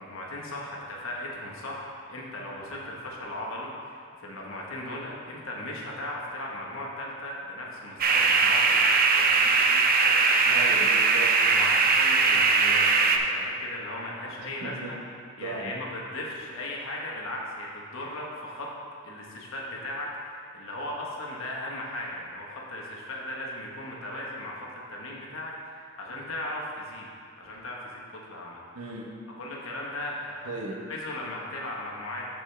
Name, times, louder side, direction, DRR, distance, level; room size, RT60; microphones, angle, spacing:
voice 1, 0.0-10.7 11.4-15.0 15.4-18.7 19.0-27.1 27.4-28.6 29.4-30.5 30.9-32.3, left 1 dB, 65° left, -3 dB, 1.3 m, -37 dB
sound 1, 8.0-13.2, right 4 dB, 40° right, 0.5 m, -21 dB
voice 2, 10.5-11.3 14.4-15.0 15.4-15.8 28.7-29.1 30.4-30.9, right 2 dB, 85° right, 0 dB, 1.1 m, -36 dB
12.5 x 4.5 x 3.4 m, 2.3 s
head